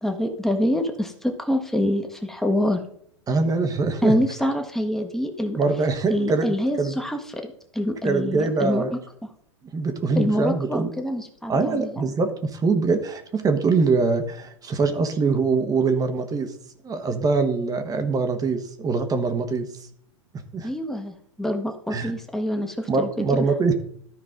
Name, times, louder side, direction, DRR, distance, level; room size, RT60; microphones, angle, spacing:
voice 1, 0.0-2.8 4.0-5.6 6.1-8.8 9.2-9.3 10.2-12.0 20.6-23.5, equal, ahead, 4 dB, 1.4 m, -26 dB
voice 2, 3.3-4.2 5.5-6.5 6.8-7.0 8.0-8.9 9.7-10.9 11.5-16.5 16.8-19.7 20.5-20.7 21.9-22.1 22.9-23.7, right 4 dB, 25° right, 7 dB, 1.3 m, -23 dB
13.5 x 4.8 x 3.8 m, 0.66 s
hypercardioid pair, 100°, 16 cm